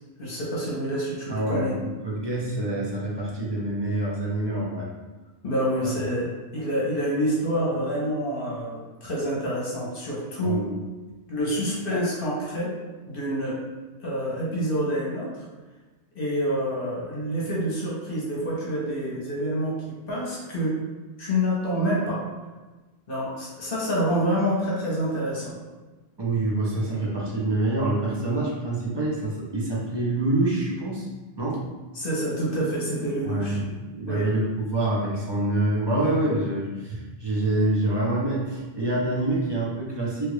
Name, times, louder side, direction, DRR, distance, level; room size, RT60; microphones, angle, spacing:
voice 1, 0.2-1.8 5.4-10.6 11.3-12.7 13.1-13.6 14.0-15.5 16.1-20.7 21.2-22.2 23.1-25.5 31.9-33.6 34.1-34.3, equal, 55° left, -5 dB, 1.0 m, -27 dB
voice 2, 1.3-4.9 10.4-10.7 26.2-31.1 31.4-31.6 33.2-40.3, right 2 dB, 25° right, -5 dB, 0.6 m, -26 dB
3.1 x 2.4 x 3.2 m, 1.2 s
omnidirectional pair, 1.2 m